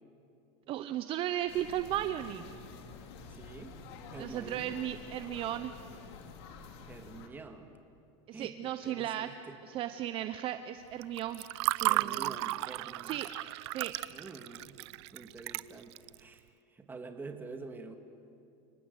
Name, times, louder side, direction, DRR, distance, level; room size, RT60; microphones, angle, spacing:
voice 1, 0.7-2.5 4.2-5.7 8.3-9.3 9.7-11.4 11.7-12.4 13.0-13.3 13.7-13.9, right 12 dB, 35° right, 10 dB, 0.8 m, -35 dB
sound 1, 1.5-7.3, left 4 dB, 65° left, 2.6 m, -49 dB
voice 2, 3.3-3.8 4.1-4.8 6.9-7.7 8.3-9.6 11.9-13.2 14.1-14.8 15.1-18.0, right 3 dB, 15° right, 6 dB, 1.9 m, -47 dB
Water / Fill (with liquid), 11.0-16.1, right 19 dB, 70° right, 0.5 m, -34 dB
29.0 x 19.0 x 8.1 m, 2.6 s
supercardioid pair, 140°, 15 cm